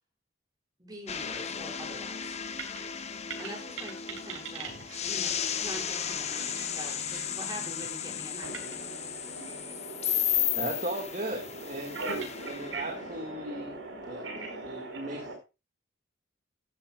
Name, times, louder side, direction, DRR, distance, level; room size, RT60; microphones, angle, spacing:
voice 1, 0.8-2.4 3.4-4.7 5.1-8.7, right 1 dB, 20° right, 6.1 m, -44 dB
sound 1, 1.1-14.1, left 9 dB, 35° left, 0.8 m, -34 dB
sound 2, 2.2-13.0, right 5 dB, 85° right, 5.9 m, -47 dB
voice 2, 8.4-15.3, right 2 dB, 70° right, 4.9 m, -40 dB
voice 3, 10.2-13.7 14.0-15.3, right 1 dB, 40° right, 1.9 m, -37 dB
15.0 x 11.5 x 2.4 m
head